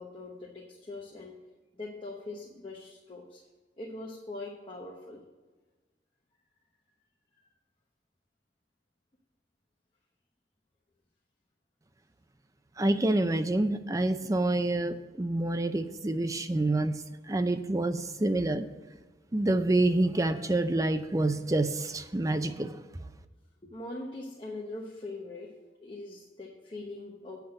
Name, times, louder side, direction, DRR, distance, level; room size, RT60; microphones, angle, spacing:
voice 1, 0.0-1.4 1.7-3.4 3.8-5.2 23.6-25.5 25.8-27.4, left 2 dB, 30° left, -2 dB, 1.0 m, -42 dB
voice 2, 12.8-17.0 17.3-18.7 19.3-22.8, right 2 dB, 20° right, 9 dB, 0.5 m, -27 dB
8.6 x 5.8 x 6.5 m, 1.2 s
head